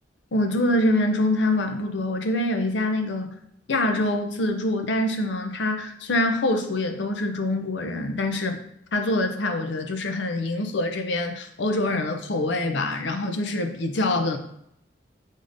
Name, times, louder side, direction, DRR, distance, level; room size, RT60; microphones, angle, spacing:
voice 1, 0.3-3.3 3.7-8.6 8.9-14.4, left 1 dB, 75° left, 5 dB, 0.6 m, -25 dB
5.1 x 3.6 x 2.6 m, 0.74 s
head